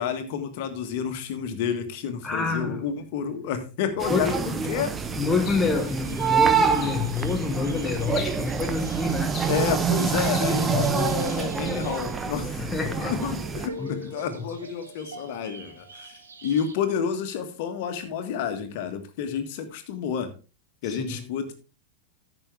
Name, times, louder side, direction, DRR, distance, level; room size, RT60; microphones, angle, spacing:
voice 1, 0.0-4.9 9.5-12.5 13.0-20.3 20.8-21.5, left 7 dB, 50° left, 1.6 m, -30 dB
voice 2, 2.2-2.9 4.1-4.9 5.1-9.3 10.7-11.1 12.6-13.1 13.8-14.1 14.4-14.5 20.8-21.2, left 4 dB, 10° left, 1.0 m, -28 dB
sound 1, 4.0-13.7, right 6 dB, 20° right, 0.9 m, -26 dB
sound 2, 5.5-5.8 6.8-7.1 8.1-8.5 9.3-9.7 10.3-10.6 11.7-11.9, left 7 dB, 30° left, 2.0 m, -40 dB
sound 3, 5.7-16.8, right 2 dB, 70° right, 1.6 m, -46 dB
14.0 x 6.2 x 3.5 m
figure-of-eight pair, 90°, 0 cm